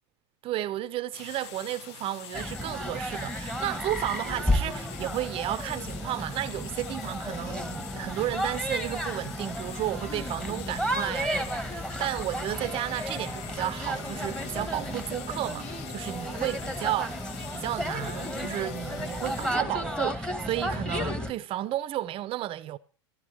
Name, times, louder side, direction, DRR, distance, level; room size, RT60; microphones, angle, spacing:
voice 1, 0.4-17.2 17.5-22.8, right 14 dB, 40° right, 0.7 m, -33 dB
sound 1, 1.1-19.5, left 10 dB, 65° left, 0.8 m, -45 dB
sound 2, 2.3-21.3, equal, 5° left, 1.5 m, -33 dB
sound 3, 12.4-18.9, left 5 dB, 40° left, 2.5 m, -48 dB
14.0 x 11.0 x 4.9 m
hypercardioid pair, 110°, 15 cm